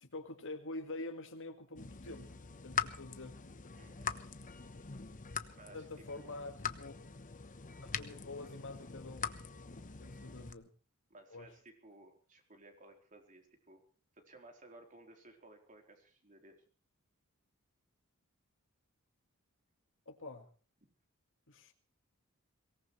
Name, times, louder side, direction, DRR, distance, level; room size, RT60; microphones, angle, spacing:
voice 1, 0.0-2.4 2.6-3.4 5.7-7.0 7.8-9.3 9.9-10.7 11.3-11.5 20.1-20.5 21.5-21.7, left 2 dB, 60° left, 5 dB, 1.9 m, -46 dB
sound 1, 1.8-10.5, left 6 dB, 35° left, 1.0 m, -43 dB
voice 2, 3.8-4.2 5.5-5.9 6.1-6.3 8.1-8.2 11.1-13.8 14.1-16.6 20.8-20.9, right 2 dB, 35° right, 3 dB, 4.0 m, -58 dB
23.5 x 18.5 x 3.3 m, 0.38 s
head